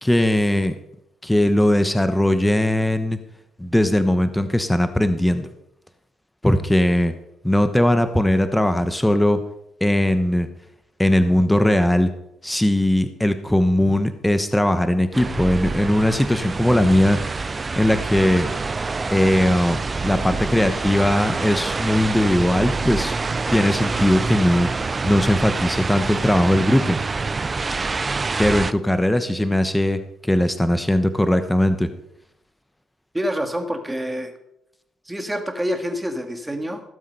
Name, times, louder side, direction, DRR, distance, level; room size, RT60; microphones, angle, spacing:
voice 1, 0.0-0.7 1.2-3.2 3.6-5.5 6.4-7.1 7.4-9.4 9.8-10.5 11.0-12.1 12.4-17.5 17.8-18.5 19.1-23.1 23.5-27.0 28.4-31.9, left 1 dB, 5° left, 9 dB, 1.1 m, -19 dB
sound 1, 15.1-28.7, right 4 dB, 30° right, 0.5 m, -26 dB
voice 2, 33.1-34.3 35.1-36.8, equal, 10° right, 5 dB, 2.1 m, -27 dB
17.0 x 7.4 x 5.5 m, 0.80 s
cardioid pair, 90°, 0 cm